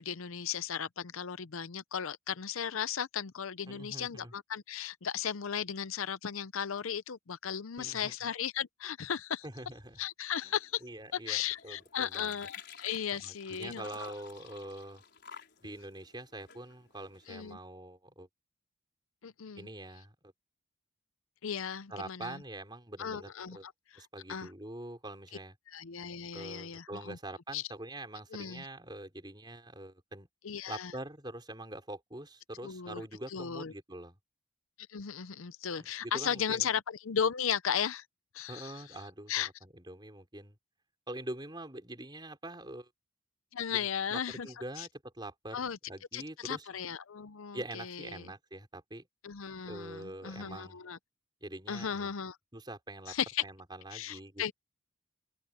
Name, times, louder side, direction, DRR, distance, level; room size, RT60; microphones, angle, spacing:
voice 1, 0.0-9.5 10.0-10.8 11.1-14.1 17.3-17.6 19.2-19.7 21.4-22.4 23.0-24.5 25.7-27.2 27.5-27.6 28.3-28.7 30.4-30.9 32.6-33.7 34.8-38.0 38.3-39.0 39.3-39.5 43.5-44.5 44.8-44.9 45.5-45.8 46.1-48.3 49.2-51.0 51.7-52.4 53.1-53.4 53.9-54.5, left 8 dB, 75° left, 0.6 m, -36 dB
voice 2, 3.7-4.3 7.8-8.2 9.4-10.0 10.4-10.5 10.8-12.5 13.1-15.0 15.6-18.3 19.5-20.3 21.9-23.6 24.0-25.5 26.3-30.3 30.7-34.2 35.8-36.7 38.5-40.6 41.1-42.9 43.7-45.6 45.9-46.7 47.5-49.1 49.7-50.8 51.4-52.1 52.5-53.2 53.4-54.5, right 1 dB, 20° right, 4.7 m, -44 dB
sound 1, 10.4-17.5, left 7 dB, 50° left, 5.2 m, -53 dB
open air
head